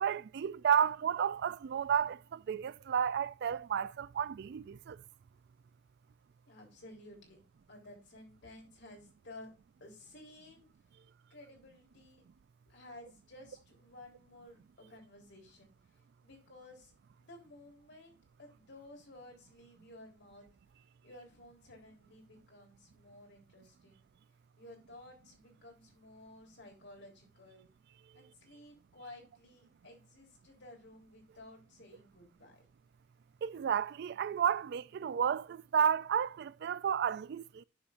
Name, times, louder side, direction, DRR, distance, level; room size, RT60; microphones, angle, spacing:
voice 1, 0.0-5.0 33.4-37.6, right 8 dB, 60° right, 0.3 m, -32 dB
voice 2, 6.5-7.4 7.7-9.5 9.8-10.7 11.3-12.2 12.7-15.7 16.2-16.9 17.2-20.5 21.0-24.1 24.6-27.7 28.1-32.7, left 1 dB, 65° left, 3.6 m, -54 dB
10.0 x 6.3 x 2.5 m
head